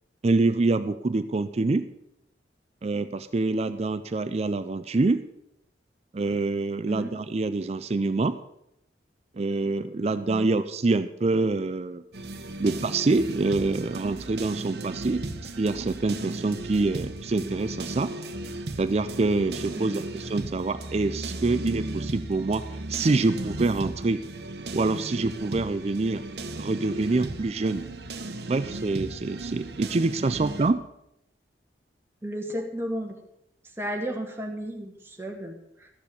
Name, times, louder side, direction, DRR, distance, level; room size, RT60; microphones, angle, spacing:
voice 1, 0.2-1.9 2.8-5.3 6.1-8.4 9.4-12.0 12.6-18.1 18.8-24.2 24.7-26.2 26.6-27.9 28.5-30.8, right 3 dB, 35° right, 12 dB, 0.4 m, -26 dB
sound 1, 12.1-30.7, right 2 dB, 65° right, 1.0 m, -36 dB
voice 2, 32.2-33.2 33.8-35.9, equal, 15° right, 0 dB, 1.9 m, -33 dB
13.5 x 7.2 x 6.9 m, 0.80 s
head